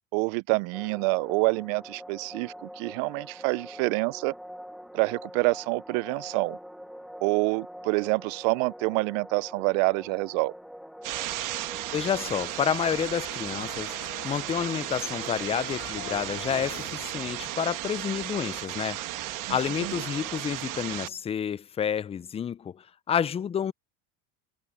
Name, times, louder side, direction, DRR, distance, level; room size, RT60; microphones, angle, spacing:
voice 1, 0.1-4.3 4.9-6.6 7.2-10.5 19.4-19.9, right 30 dB, 75° right, 0.5 m, -27 dB
sound 1, 0.7-20.4, equal, ahead, 1.7 m, -46 dB
sound 2, 11.0-21.1, right 15 dB, 50° right, 1.3 m, -35 dB
voice 2, 11.9-19.0 19.5-23.7, left 8 dB, 15° left, 0.3 m, -29 dB
sound 3, 12.3-17.8 18.0-20.4, left 10 dB, 35° left, 2.3 m, -47 dB
supercardioid pair, 110°, 39 cm